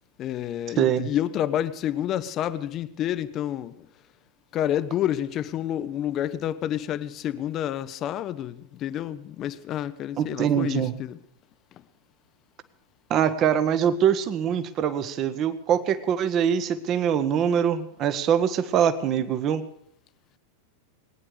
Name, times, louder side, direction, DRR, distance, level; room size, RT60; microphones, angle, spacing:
voice 1, 0.2-3.7 4.5-11.2, left 11 dB, 35° left, 0.6 m, -29 dB
voice 2, 0.8-1.1 10.2-11.0 13.1-19.6, right 8 dB, 35° right, 1.0 m, -23 dB
19.5 x 9.9 x 6.5 m
figure-of-eight pair, 90°, 0 cm